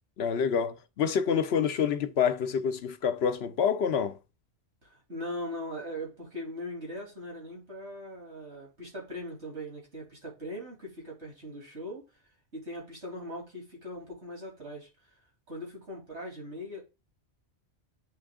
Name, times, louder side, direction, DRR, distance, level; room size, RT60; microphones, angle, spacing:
voice 1, 0.2-4.2, left 7 dB, 70° left, 0.8 m, -27 dB
voice 2, 4.8-12.0 12.5-14.9 15.5-16.8, equal, 75° right, 3.1 m, -40 dB
8.8 x 3.6 x 3.6 m
omnidirectional pair, 1.2 m